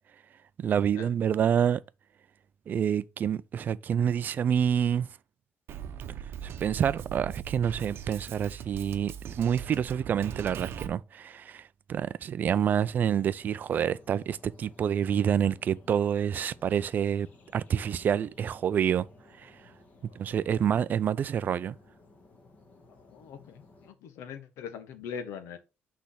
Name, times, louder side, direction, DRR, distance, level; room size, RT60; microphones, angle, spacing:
voice 1, 0.6-1.8 2.7-5.1 6.4-17.3 17.5-19.1 19.4-19.5 20.2-21.8, right 8 dB, 40° right, 0.4 m, -27 dB
Drum kit, 5.7-10.9, right 9 dB, 55° right, 0.8 m, -40 dB
sound 1, 12.5-23.9, left 3 dB, 35° left, 1.6 m, -57 dB
voice 2, 23.0-25.6, left 7 dB, 90° left, 1.3 m, -42 dB
6.3 x 3.4 x 5.7 m
cardioid pair, 150°, 5 cm